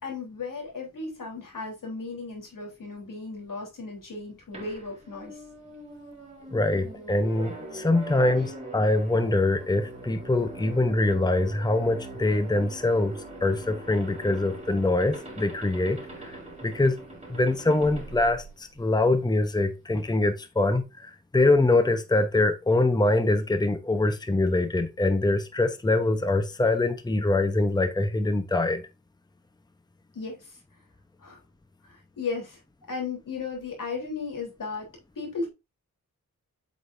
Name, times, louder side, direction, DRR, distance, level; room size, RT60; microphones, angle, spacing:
voice 1, 0.0-5.4 8.1-8.4 30.1-30.6 31.2-31.4 31.8-32.6 32.9-34.9 35.2-35.5, left 4 dB, 90° left, 3.6 m, -35 dB
sound 1, 4.5-19.1, right 2 dB, 20° right, 3.4 m, -42 dB
voice 2, 6.5-13.1 13.4-17.0 17.3-28.8, left 2 dB, 15° left, 0.8 m, -24 dB
7.9 x 5.3 x 2.6 m
wide cardioid pair, 115°, 32 cm